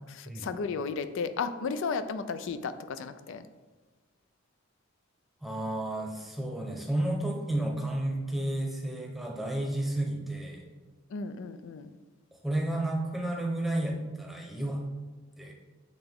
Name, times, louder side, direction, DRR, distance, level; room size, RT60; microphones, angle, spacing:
voice 1, 0.1-3.5 11.1-11.9, left 5 dB, 65° left, 11 dB, 0.4 m, -34 dB
voice 2, 5.4-10.6 12.4-14.8 15.4-15.5, right 1 dB, ahead, -1 dB, 0.8 m, -31 dB
8.2 x 3.3 x 3.5 m, 1.3 s
head